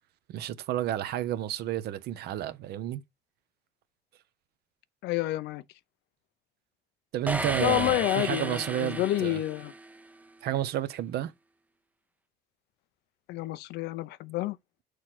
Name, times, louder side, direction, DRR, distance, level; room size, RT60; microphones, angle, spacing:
voice 1, 0.3-3.0 7.1-9.4 10.4-11.3, right 12 dB, 70° right, 0.8 m, -31 dB
voice 2, 5.0-5.6 7.6-9.7 13.3-14.6, left 15 dB, 80° left, 0.6 m, -29 dB
sound 1, 7.3-10.1, right 2 dB, 10° right, 0.5 m, -34 dB
6.5 x 3.2 x 5.8 m
cardioid pair, 110°, 17 cm